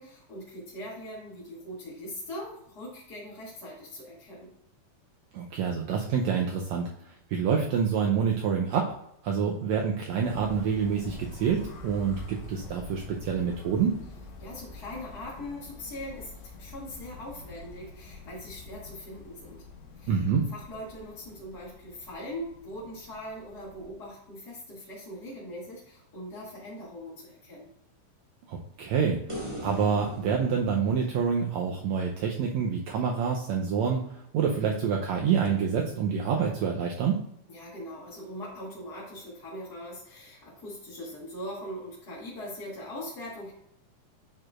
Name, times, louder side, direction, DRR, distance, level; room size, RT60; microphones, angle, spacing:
voice 1, 0.0-4.5 14.4-16.3 16.6-19.6 20.0-27.7 37.5-43.5, left 1 dB, 30° left, -9 dB, 2.5 m, -41 dB
voice 2, 5.3-6.9 7.3-8.9 9.2-14.0 20.1-20.5 28.5-37.2, right 6 dB, 75° right, 0 dB, 1.8 m, -27 dB
sound 1, 10.2-24.0, left 3 dB, 65° left, 2.2 m, -46 dB
sound 2, 29.3-32.6 35.4-35.5, right 1 dB, 50° right, 0.3 m, -41 dB
11.0 x 4.8 x 2.4 m, 0.74 s
omnidirectional pair, 3.6 m